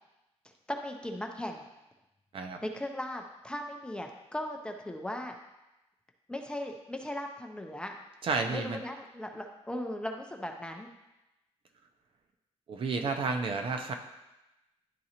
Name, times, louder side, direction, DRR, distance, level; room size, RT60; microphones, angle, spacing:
voice 1, 0.7-1.7 2.6-5.3 6.3-7.9 8.5-10.9, left 1 dB, 10° left, 2 dB, 0.5 m, -38 dB
voice 2, 8.2-8.8 12.7-13.9, right 4 dB, 50° right, 4 dB, 0.6 m, -31 dB
11.0 x 3.8 x 2.9 m, 0.96 s
wide cardioid pair, 150°, 11 cm